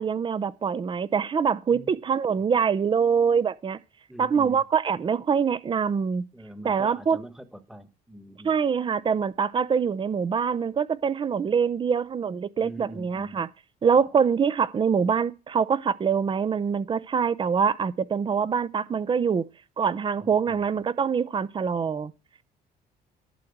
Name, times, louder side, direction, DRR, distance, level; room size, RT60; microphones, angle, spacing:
voice 1, 0.0-3.8 4.2-6.2 6.6-7.2 8.4-13.5 13.8-19.5 19.8-22.1, right 6 dB, 30° right, 0.6 m, -24 dB
voice 2, 4.1-4.6 6.3-8.6 12.6-13.4 20.2-20.6, right 1 dB, 5° right, 1.3 m, -43 dB
11.0 x 4.6 x 7.8 m
cardioid pair, 110°, 17 cm